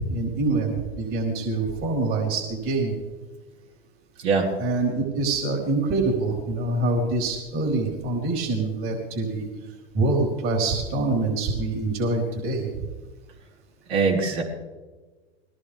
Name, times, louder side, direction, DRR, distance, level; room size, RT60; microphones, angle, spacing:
voice 1, 0.1-2.9 4.6-9.5 9.9-12.9, right 2 dB, 40° right, 0 dB, 4.5 m, -25 dB
voice 2, 13.9-14.4, right 4 dB, 75° right, -3 dB, 5.9 m, -22 dB
22.0 x 18.0 x 3.6 m, 1.3 s
hypercardioid pair, 110°, 32 cm